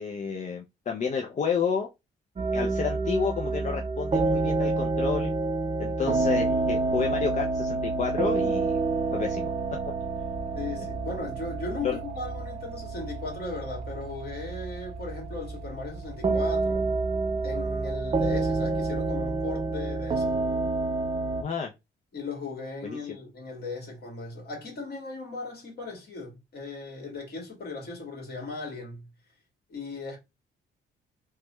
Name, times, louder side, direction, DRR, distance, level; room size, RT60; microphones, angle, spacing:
voice 1, 0.0-1.9 2.5-5.3 5.8-8.8 9.1-9.5 11.8-12.0 21.4-21.7 22.8-23.0, left 6 dB, 40° left, 0.5 m, -30 dB
sound 1, 2.4-21.4, right 3 dB, 25° right, 0.5 m, -28 dB
Mechanical fan, 8.8-19.6, right 2 dB, ahead, 0.9 m, -44 dB
voice 2, 10.6-17.0 17.4-20.4 22.1-29.1 29.7-30.2, left 3 dB, 55° left, 1.8 m, -37 dB
3.1 x 2.2 x 3.0 m
cardioid pair, 90°, 20 cm